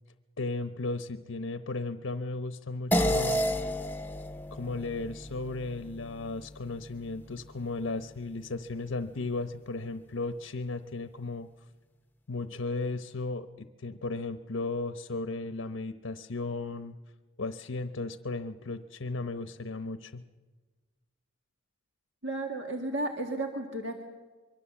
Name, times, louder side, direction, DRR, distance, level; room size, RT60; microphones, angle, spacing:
voice 1, 0.4-3.4 4.5-11.5 12.3-16.9 17.4-20.2, left 3 dB, 90° left, 9 dB, 0.9 m, -35 dB
sound 1, 2.9-7.6, equal, 10° left, 0.9 m, -32 dB
voice 2, 22.2-24.0, right 2 dB, 65° right, 2 dB, 1.9 m, -33 dB
24.5 x 23.0 x 7.2 m, 1.3 s
head